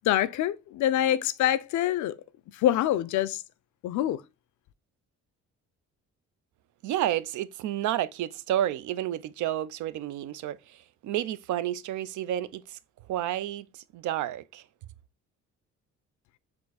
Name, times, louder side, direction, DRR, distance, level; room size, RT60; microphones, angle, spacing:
voice 1, 0.0-2.1 2.5-3.4 3.8-4.2, left 12 dB, 75° left, 0.5 m, -25 dB
voice 2, 6.8-12.8 13.1-14.6, right 12 dB, 75° right, 0.5 m, -31 dB
4.4 x 2.6 x 4.0 m
cardioid pair, 90°, 30 cm